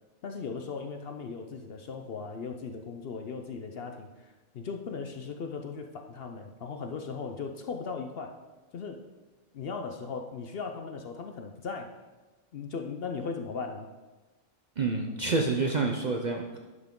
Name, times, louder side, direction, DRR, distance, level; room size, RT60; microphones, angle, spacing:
voice 1, 0.2-8.3 8.7-9.0 9.5-11.9 12.5-13.9, left 5 dB, 55° left, 4 dB, 0.8 m, -38 dB
voice 2, 14.8-16.6, right 3 dB, 45° right, 2 dB, 0.6 m, -28 dB
11.0 x 5.9 x 3.7 m, 1.2 s
omnidirectional pair, 1.4 m